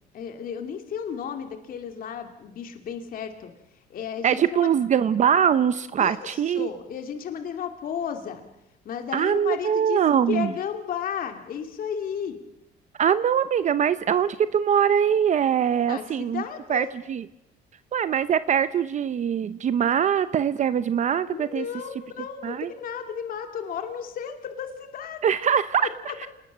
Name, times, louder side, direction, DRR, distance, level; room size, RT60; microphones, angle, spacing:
voice 1, 0.1-3.5 3.9-4.7 6.0-8.5 8.8-10.0 10.3-12.4 15.9-16.9 21.3-25.2 25.8-26.3, left 8 dB, 55° left, 5 dB, 2.6 m, -33 dB
voice 2, 4.2-6.7 9.1-10.5 13.0-16.4 16.7-17.2 17.9-21.6 22.4-22.7 25.2-25.9 26.2-26.3, right 8 dB, 45° right, 13 dB, 0.8 m, -22 dB
28.0 x 20.0 x 7.6 m, 0.83 s
cardioid pair, 110°, 17 cm